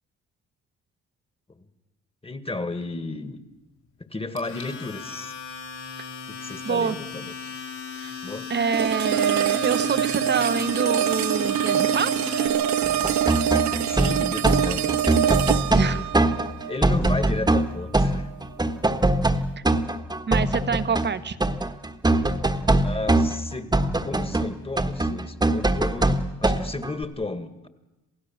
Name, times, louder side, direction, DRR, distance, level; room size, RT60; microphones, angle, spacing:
voice 1, 2.2-3.4 4.1-5.3 6.2-7.5 8.2-8.5 13.4-13.5 13.9-14.9 15.8-16.1 16.6-18.3 18.6-18.7 22.5-27.7, left 2 dB, 20° left, 11 dB, 1.8 m, -33 dB
Domestic sounds home sounds, 4.4-12.5, left 6 dB, 80° left, 6.2 m, -36 dB
voice 2, 6.6-7.0 8.0-8.1 8.5-12.4 15.7-16.0 19.6-19.7 20.3-21.4, right 6 dB, 35° right, 12 dB, 1.2 m, -26 dB
sound 1, 8.7-17.8, right 10 dB, 65° right, 0.9 m, -24 dB
sound 2, 12.8-21.1 21.4-27.0, right 2 dB, 15° right, 1.5 m, -22 dB
28.0 x 16.0 x 7.3 m, 1.0 s
cardioid pair, 90°, 30 cm